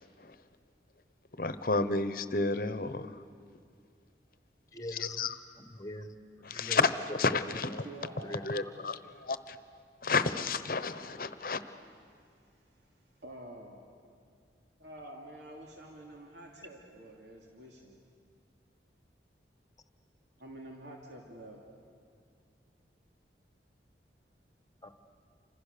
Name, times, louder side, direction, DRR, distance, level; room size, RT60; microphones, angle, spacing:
voice 1, 1.4-3.1 4.9-5.3 6.4-7.8 8.4-9.6 10.0-11.6, left 3 dB, 50° left, 12 dB, 1.0 m, -31 dB
voice 2, 4.7-5.3 5.8-6.2 6.5-6.9 8.2-8.7 24.8-24.9, left 1 dB, 20° left, 8 dB, 1.2 m, -42 dB
voice 3, 7.8-8.3 12.3-12.9 13.2-13.8 14.8-18.0 20.4-21.6, right 1 dB, 80° right, -1 dB, 2.8 m, -48 dB
29.0 x 26.0 x 6.8 m, 2.2 s
head